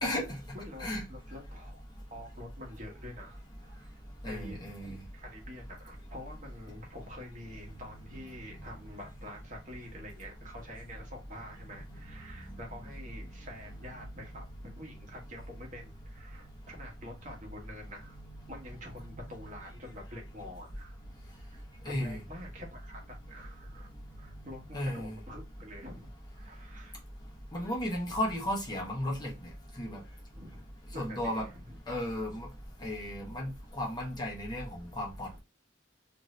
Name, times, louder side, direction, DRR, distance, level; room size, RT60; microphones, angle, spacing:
voice 1, 0.0-0.4 0.8-1.0 4.2-5.0 21.8-22.2 24.7-25.1 27.5-29.3 29.8-30.0 30.9-31.5 31.9-32.5 32.8-35.4, left 1 dB, 20° left, 0.8 m, -34 dB
voice 2, 0.5-1.8 2.1-18.2 18.5-21.0 21.3-23.0 23.3-26.1 26.3-27.0 30.3-30.6 30.9-31.8, left 1 dB, 40° right, 1.0 m, -47 dB
sound 1, 7.2-24.7, right 4 dB, 80° right, 0.5 m, -58 dB
2.7 x 2.6 x 3.0 m
head